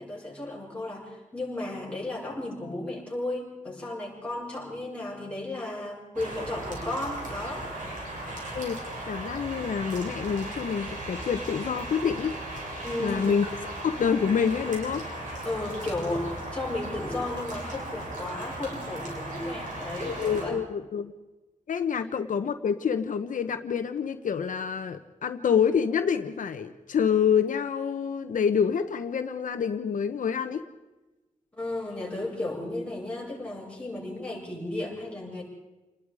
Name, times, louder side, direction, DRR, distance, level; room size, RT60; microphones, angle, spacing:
voice 1, 0.0-7.7 12.8-13.3 15.4-20.6 31.6-35.4, left 2 dB, 10° left, -4 dB, 7.4 m, -34 dB
sound 1, 6.2-20.4, right 1 dB, 80° right, 7.5 m, -37 dB
voice 2, 8.5-12.3 13.0-13.5 13.8-15.1 20.0-21.1 21.7-30.6, left 7 dB, 85° left, 8 dB, 1.1 m, -27 dB
28.5 x 20.5 x 5.0 m, 1.1 s
wide cardioid pair, 150°, 13 cm